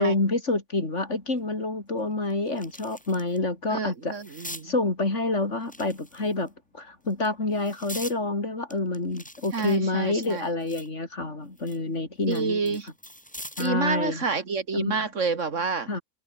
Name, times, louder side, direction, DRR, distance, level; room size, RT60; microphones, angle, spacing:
voice 1, 0.0-4.2 4.6-12.8 13.6-14.2 14.7-15.0 15.9-16.0, left 2 dB, 55° left, 4.3 m, -28 dB
sound 1, 1.4-1.5 1.9-3.4 3.7-4.7 5.6-6.5 7.1-8.2 8.7-10.9 11.3-13.8 15.2-15.4, equal, 5° left, 5.6 m, -43 dB
voice 2, 3.7-4.7 9.5-10.5 12.3-12.9 13.6-15.9, right 4 dB, 55° right, 2.1 m, -29 dB
omnidirectional pair, 1.5 m